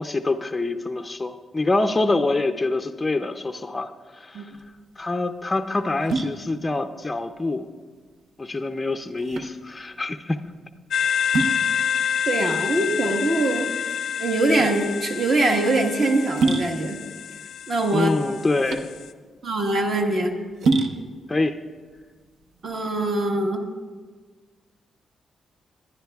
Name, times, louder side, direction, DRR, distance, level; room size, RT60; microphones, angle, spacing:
voice 1, 0.0-4.5 5.0-7.7 8.4-10.4 17.9-18.9 21.3-21.6, left 2 dB, 15° left, 6 dB, 0.4 m, -25 dB
sound 1, 4.5-23.1, right 3 dB, 75° right, 0.7 m, -30 dB
sound 2, 10.9-19.1, left 8 dB, 75° left, 0.4 m, -28 dB
voice 2, 12.3-13.7 14.2-17.0 17.7-18.1 19.4-20.3 22.6-23.6, right 2 dB, 45° right, 2 dB, 1.3 m, -23 dB
20.5 x 10.5 x 2.3 m, 1.5 s
cardioid pair, 145°, 0 cm